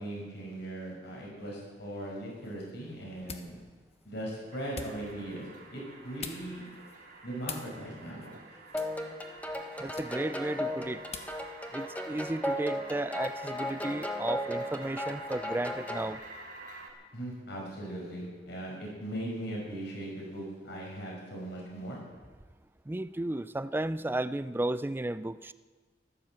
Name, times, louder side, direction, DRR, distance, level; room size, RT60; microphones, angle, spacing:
voice 1, 0.0-3.6 4.0-6.7 7.2-8.3 17.1-22.0, right 1 dB, 65° left, -2 dB, 5.6 m, -39 dB
sound 1, 2.3-11.5, left 5 dB, 35° left, 1.2 m, -48 dB
sound 2, 4.5-16.9, right 3 dB, 60° right, 3.1 m, -49 dB
sound 3, 8.7-16.1, left 1 dB, 10° left, 1.3 m, -36 dB
voice 2, 9.8-11.0 11.7-16.2 22.9-25.5, right 1 dB, 10° right, 15 dB, 0.4 m, -34 dB
15.0 x 11.0 x 7.5 m, 1.3 s
head